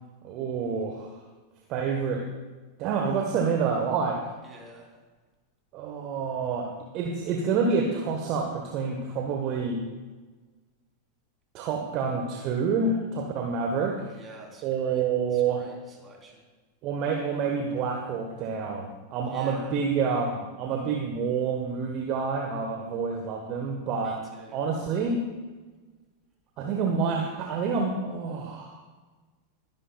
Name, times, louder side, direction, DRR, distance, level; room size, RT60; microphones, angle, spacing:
voice 1, 0.2-1.2 1.7-2.2 2.8-4.2 5.7-9.8 11.5-14.2 14.6-15.6 16.8-24.2 24.5-25.3 26.6-28.8, right 5 dB, 40° right, 3 dB, 1.3 m, -28 dB
voice 2, 4.4-5.0 14.1-15.1 15.3-16.4 19.2-19.8 23.9-24.6, right 1 dB, 20° right, -1 dB, 3.7 m, -48 dB
21.5 x 11.0 x 2.4 m, 1.3 s
figure-of-eight pair, 90°, 0 cm